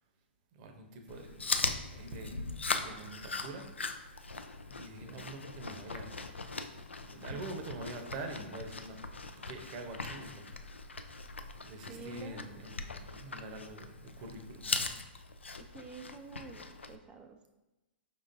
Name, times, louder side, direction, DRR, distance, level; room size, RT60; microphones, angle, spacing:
voice 1, 0.5-1.6 1.9-2.4 2.7-3.7 4.6-6.2 7.0-9.0 9.4-11.0 11.6-14.9, right 2 dB, 40° right, 5 dB, 0.7 m, -45 dB
Chewing mastication, 1.1-17.0, left 3 dB, 90° left, 0.3 m, -40 dB
voice 2, 11.9-12.6 15.6-17.5, right 5 dB, 15° right, 5 dB, 0.4 m, -49 dB
5.1 x 3.8 x 2.5 m, 1.1 s
figure-of-eight pair, 115°, 6 cm